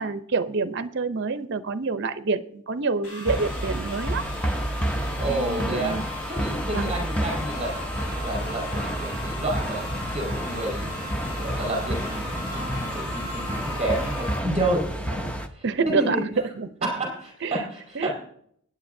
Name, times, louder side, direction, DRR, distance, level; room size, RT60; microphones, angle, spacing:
voice 1, 0.0-4.3 5.3-6.0 6.7-7.0 15.6-16.7 17.4-17.6 17.9-18.1, right 4 dB, 50° right, 12 dB, 0.6 m, -27 dB
sound 1, 3.0-14.4, left 2 dB, 65° left, 4.6 m, -37 dB
sound 2, 3.2-15.5, equal, 5° left, 0.6 m, -30 dB
voice 2, 5.2-6.0 6.3-16.2 16.8-18.1, right 1 dB, 25° right, -1 dB, 4.7 m, -30 dB
sound 3, 5.7-14.3, right 1 dB, 85° left, 6.3 m, -44 dB
21.0 x 9.2 x 2.6 m, 0.66 s
head